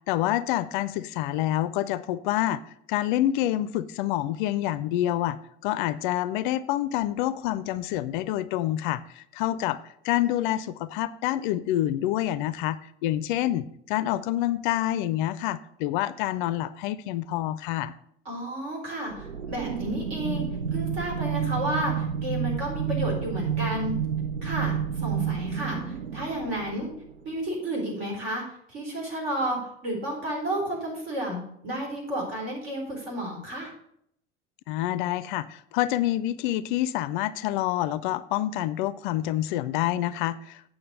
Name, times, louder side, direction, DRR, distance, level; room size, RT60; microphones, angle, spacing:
voice 1, 0.1-2.6 2.9-9.8 10.0-17.9 34.7-40.7, left 13 dB, 45° left, 17 dB, 0.4 m, -27 dB
voice 2, 18.2-20.4 20.7-24.0 24.4-26.9 27.2-33.7, right 1 dB, 60° right, -1 dB, 4.2 m, -32 dB
sound 1, 19.1-27.4, right 7 dB, 80° right, 0.5 m, -30 dB
8.6 x 6.0 x 6.3 m, 0.71 s
figure-of-eight pair, 75°, 35 cm